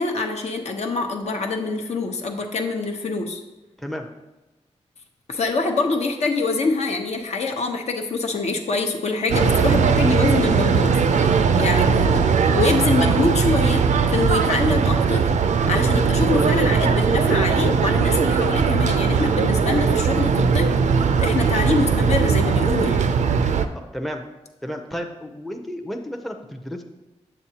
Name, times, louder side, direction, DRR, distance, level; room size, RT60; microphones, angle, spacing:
voice 1, 0.0-3.4 5.3-13.8 14.1-15.2 15.7-23.1, left 3 dB, 65° left, 3 dB, 0.9 m, -24 dB
sound 1, 9.3-23.7, right 6 dB, 85° right, 0.4 m, -19 dB
voice 2, 23.7-24.2 24.6-26.8, equal, ahead, 3 dB, 0.5 m, -32 dB
8.5 x 7.2 x 2.8 m, 1.1 s
wide cardioid pair, 150°, 12 cm